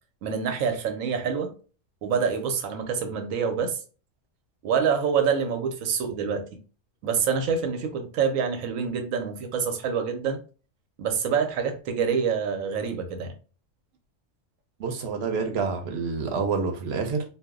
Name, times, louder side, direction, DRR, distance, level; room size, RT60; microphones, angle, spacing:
voice 1, 0.2-1.5 2.0-3.8 4.6-6.6 7.0-10.4 11.0-13.3, right 6 dB, 90° right, 1.0 m, -26 dB
voice 2, 14.8-17.2, right 5 dB, 60° right, 0.8 m, -28 dB
2.3 x 2.0 x 3.5 m
omnidirectional pair, 1.4 m